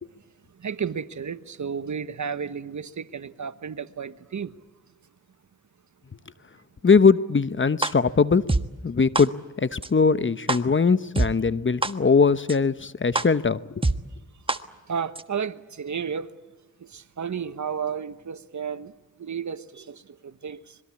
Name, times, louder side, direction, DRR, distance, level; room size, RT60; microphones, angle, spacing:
voice 1, 0.5-4.5 14.9-16.3 16.8-20.8, right 7 dB, 60° right, 1.3 m, -33 dB
voice 2, 6.8-8.5 8.8-13.9, left 5 dB, 35° left, 0.9 m, -21 dB
sound 1, 7.8-7.9 8.5-8.6 9.2-9.3 9.8-9.9 10.5-10.6 11.2-11.3 11.8-11.9 12.5-12.6 13.2-13.3 13.8-13.9 14.5-14.6 15.2-15.3, right 2 dB, 15° right, 1.4 m, -23 dB
26.0 x 22.0 x 8.5 m
cardioid pair, 50°, 33 cm